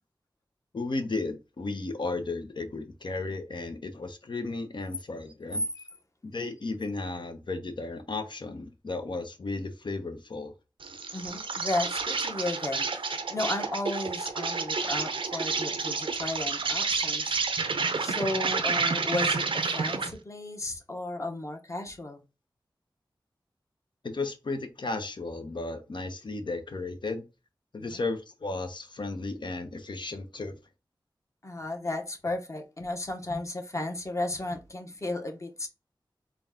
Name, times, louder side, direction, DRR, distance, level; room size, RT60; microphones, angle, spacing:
voice 1, 0.7-5.6 6.2-10.5 24.0-27.2 27.7-30.6, left 3 dB, 65° left, 0.8 m, -34 dB
Insect, 10.8-20.2, right 4 dB, 80° right, 0.6 m, -30 dB
voice 2, 11.1-17.4 18.0-22.2 27.9-28.0 31.4-35.7, left 2 dB, 35° left, 1.1 m, -34 dB
3.9 x 2.3 x 3.6 m
cardioid pair, 50°, 9 cm